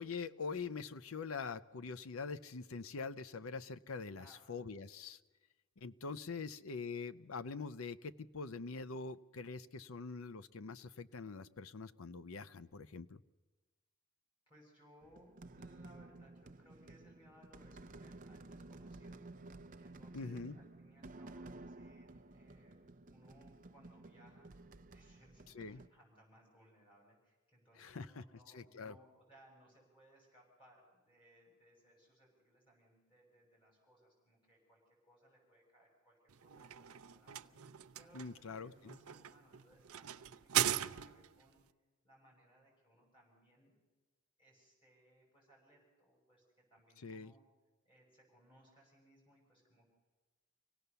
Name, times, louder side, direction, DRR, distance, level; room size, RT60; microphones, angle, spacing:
voice 1, 0.0-5.2 5.8-13.2 20.1-20.6 25.5-25.8 27.8-28.2 28.5-29.0 38.1-39.0 47.0-47.3, left 4 dB, 70° left, 13 dB, 0.6 m, -44 dB
voice 2, 4.1-4.6 6.3-6.5 14.5-19.2 19.8-24.5 24.9-41.6 42.0-43.7 44.4-47.4 47.8-49.9, equal, 25° left, -2 dB, 7.0 m, -66 dB
sound 1, 15.0-25.9, right 2 dB, 35° right, 0.6 m, -54 dB
sound 2, 36.3-41.4, right 11 dB, 75° right, 0.6 m, -39 dB
25.5 x 17.5 x 6.9 m, 1.2 s
head